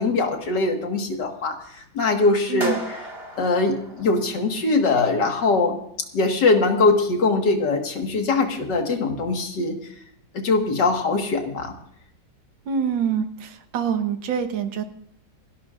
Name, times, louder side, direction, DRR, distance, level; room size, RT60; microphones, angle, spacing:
voice 1, 0.0-2.8 3.4-5.8 6.1-9.9 10.3-11.7, left 3 dB, 65° left, 4 dB, 2.2 m, -22 dB
voice 2, 2.5-2.8 12.7-14.8, right 7 dB, 85° right, 7 dB, 1.8 m, -26 dB
sound 1, 2.6-4.8, right 2 dB, 30° right, 2.3 m, -37 dB
28.5 x 11.5 x 2.5 m, 0.72 s
omnidirectional pair, 2.1 m